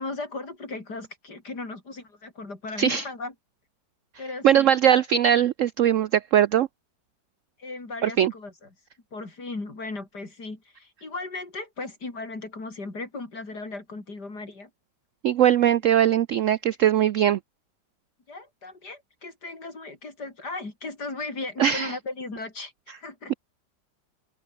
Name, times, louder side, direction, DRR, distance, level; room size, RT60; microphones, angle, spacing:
voice 1, 0.0-3.3 4.2-5.0 7.6-8.7 9.1-14.7 18.3-23.3, left 3 dB, 60° left, 5.4 m, -37 dB
voice 2, 4.4-6.7 8.0-8.3 15.2-17.4 21.6-21.9 23.3-23.4, right 10 dB, 80° right, 0.7 m, -20 dB
open air
omnidirectional pair, 2.0 m